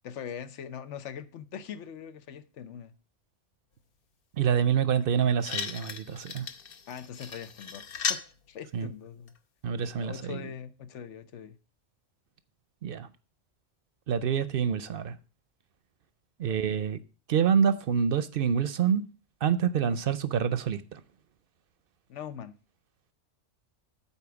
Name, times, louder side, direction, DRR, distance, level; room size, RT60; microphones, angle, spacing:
voice 1, 0.0-2.9 6.9-7.8 8.1-9.3 10.0-11.6 16.4-16.7 22.1-22.5, left 8 dB, 90° left, 1.1 m, -42 dB
voice 2, 4.4-6.5 8.7-8.9 9.6-10.4 12.8-13.1 14.1-15.2 16.4-17.0 17.3-19.1 19.4-21.0, right 7 dB, 60° right, 0.7 m, -27 dB
sound 1, 5.0-5.1 5.4-8.3 9.3-9.4, left 6 dB, 55° left, 0.9 m, -35 dB
8.4 x 4.3 x 6.8 m
omnidirectional pair, 1.2 m